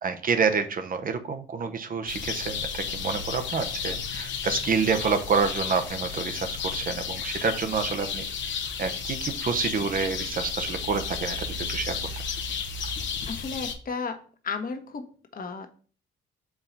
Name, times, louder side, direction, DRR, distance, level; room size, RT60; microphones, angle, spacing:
voice 1, 0.0-12.0, right 5 dB, 45° right, 8 dB, 0.8 m, -28 dB
sound 1, 2.1-13.7, left 6 dB, 70° left, 0.9 m, -33 dB
voice 2, 13.3-15.7, left 5 dB, 45° left, 6 dB, 1.1 m, -34 dB
4.8 x 3.7 x 5.3 m, 0.41 s
cardioid pair, 90°, 20 cm